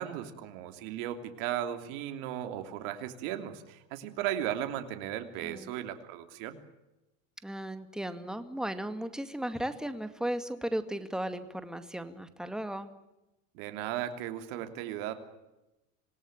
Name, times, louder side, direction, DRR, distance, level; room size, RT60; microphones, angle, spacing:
voice 1, 0.0-6.6 13.5-15.1, right 11 dB, 65° right, 7 dB, 3.2 m, -36 dB
voice 2, 7.4-12.9, right 1 dB, ahead, 9 dB, 2.1 m, -36 dB
26.5 x 19.0 x 9.0 m, 0.98 s
supercardioid pair, 110°, 41 cm